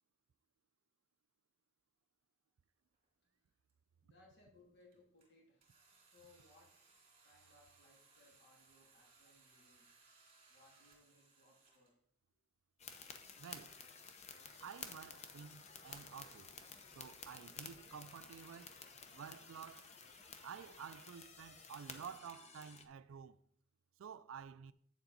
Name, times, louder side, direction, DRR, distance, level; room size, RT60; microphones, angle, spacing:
sound 1, 2.9-3.0 3.7-3.8 4.8-5.3 5.6-11.9 14.1-14.2 14.7-14.8 15.9-16.4, right 4 dB, 30° right, 2.6 m, -68 dB
voice 1, 4.0-5.7 6.0-6.7 7.2-9.9 10.5-11.9, left 2 dB, 50° left, 2.3 m, -67 dB
sound 2, 12.8-22.9, left 5 dB, 30° left, 0.7 m, -53 dB
voice 2, 13.4-13.8 14.6-16.5 16.9-18.8 19.1-19.9 20.4-23.4 24.0-24.7, right 7 dB, 70° right, 0.4 m, -51 dB
8.5 x 7.1 x 3.9 m
head